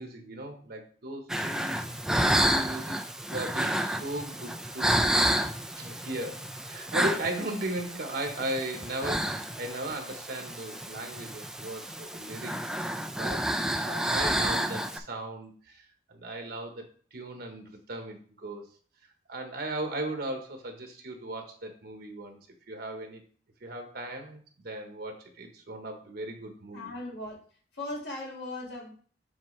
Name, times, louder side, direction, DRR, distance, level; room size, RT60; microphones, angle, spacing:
voice 1, 0.0-3.0 3.3-5.2 5.8-12.6 13.1-13.5 13.7-18.7 19.3-22.4 22.7-23.2 23.6-26.9, right 1 dB, 60° right, 4 dB, 1.1 m, -37 dB
sound 1, 1.3-15.0, right 1 dB, 5° right, 0.4 m, -30 dB
voice 2, 26.7-27.4 27.7-28.9, left 2 dB, 75° left, -2 dB, 1.8 m, -38 dB
7.4 x 4.6 x 3.2 m, 0.44 s
head